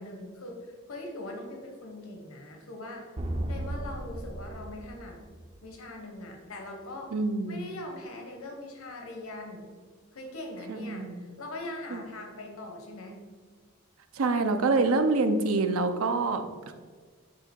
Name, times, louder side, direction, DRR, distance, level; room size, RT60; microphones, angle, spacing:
voice 1, 0.0-3.0 3.5-5.2 5.6-7.1 7.5-9.7 10.1-13.2, left 1 dB, 80° left, 2 dB, 1.1 m, -41 dB
sound 1, 3.2-5.8, right 1 dB, 25° right, 0.5 m, -35 dB
voice 2, 7.1-7.7 10.7-11.2 11.9-12.0 14.1-16.7, right 3 dB, 80° right, 7 dB, 0.6 m, -26 dB
8.5 x 2.9 x 4.4 m, 1.5 s
head